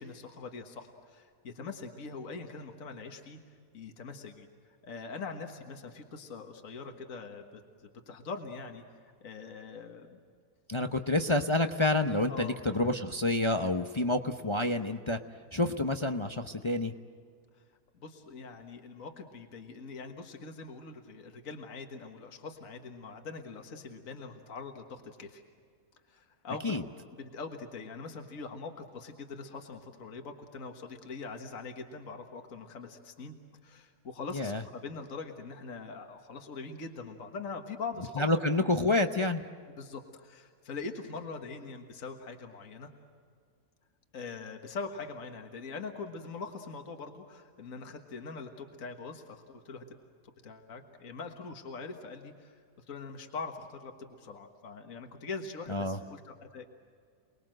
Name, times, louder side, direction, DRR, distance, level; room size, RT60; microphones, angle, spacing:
voice 1, 0.0-3.4 3.7-4.5 4.8-7.6 8.1-8.8 9.2-10.2 12.3-12.7 18.0-25.4 26.1-26.8 27.2-33.3 33.6-38.5 39.7-42.9 44.1-49.8 50.4-56.6, left 4 dB, 60° left, 4 dB, 1.9 m, -42 dB
voice 2, 10.7-15.2 15.5-16.9 26.6-26.8 34.3-34.6 38.2-39.4 55.7-56.0, left 2 dB, 25° left, 6 dB, 0.6 m, -28 dB
29.5 x 21.0 x 7.7 m, 2.1 s
omnidirectional pair, 1.6 m